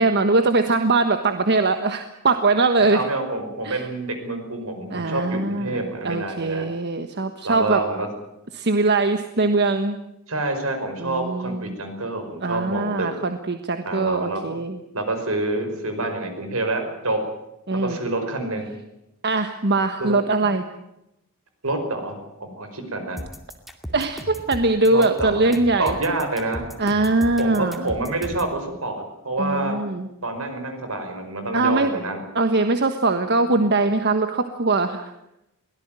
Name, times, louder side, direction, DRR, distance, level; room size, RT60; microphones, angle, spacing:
voice 1, 0.0-3.0 3.6-3.9 4.9-7.8 8.5-10.0 11.0-11.7 12.4-14.8 17.7-18.0 19.2-20.6 23.9-25.9 26.8-27.9 29.4-30.1 31.5-31.9 32.3-35.0, right 3 dB, 50° right, 7 dB, 1.4 m, -21 dB
voice 2, 2.8-6.7 7.4-8.1 10.3-13.1 13.8-14.6 14.9-17.2 17.8-18.7 20.0-20.2 21.6-23.2 24.9-25.4 25.8-26.6 27.4-29.8 30.2-32.2, right 2 dB, 75° right, 7 dB, 5.4 m, -27 dB
sound 1, 23.2-28.5, equal, ahead, 2.4 m, -36 dB
23.0 x 17.5 x 9.0 m, 0.85 s
head